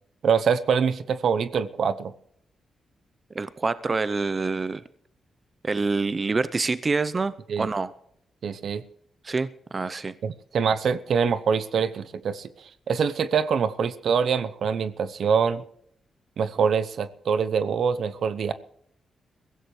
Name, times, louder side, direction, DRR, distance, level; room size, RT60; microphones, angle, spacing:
voice 1, 0.2-2.1 7.5-7.7 8.4-8.8 10.2-12.5 12.9-15.6 16.4-18.5, right 6 dB, 70° right, 14 dB, 0.8 m, -24 dB
voice 2, 3.3-4.8 5.6-7.9 9.2-10.1, right 4 dB, 35° right, 16 dB, 0.6 m, -26 dB
22.5 x 15.5 x 3.2 m, 0.67 s
cardioid pair, 85°, 0 cm